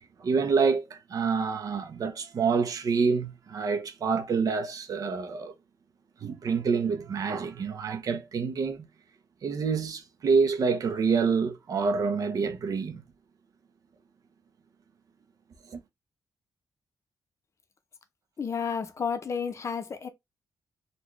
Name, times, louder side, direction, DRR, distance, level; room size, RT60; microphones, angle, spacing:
voice 1, 0.2-5.5 6.2-8.9 9.4-13.0 15.7-15.8, right 5 dB, 55° right, 0.7 m, -27 dB
voice 2, 18.4-20.1, left 6 dB, 40° left, 0.6 m, -31 dB
4.1 x 2.3 x 3.0 m
cardioid pair, 125°, 7 cm